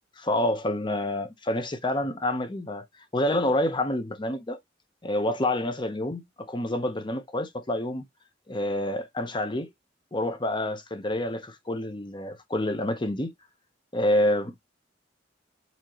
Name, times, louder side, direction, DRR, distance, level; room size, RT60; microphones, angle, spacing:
voice 1, 0.2-2.8 3.1-4.6 5.0-8.0 8.5-9.7 10.1-13.3 13.9-14.7, left 1 dB, 25° left, 0.9 m, -28 dB
4.3 x 2.9 x 3.0 m
head